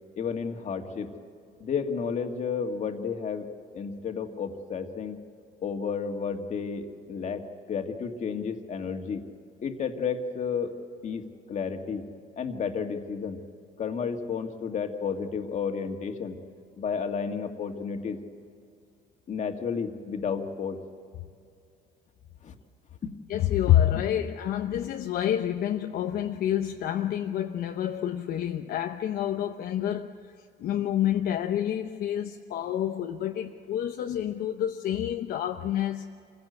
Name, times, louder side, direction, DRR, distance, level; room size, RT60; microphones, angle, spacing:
voice 1, 0.2-1.1 1.6-3.5 3.7-5.2 5.6-9.2 9.6-10.8 11.0-12.0 12.4-13.4 13.8-16.4 16.8-18.2 19.3-20.8 22.4-22.5 23.0-23.1, left 6 dB, 45° left, 2.0 m, -32 dB
voice 2, 23.3-30.1 30.6-36.1, left 11 dB, 65° left, 0.9 m, -28 dB
26.5 x 16.5 x 8.1 m
cardioid pair, 110°, 17 cm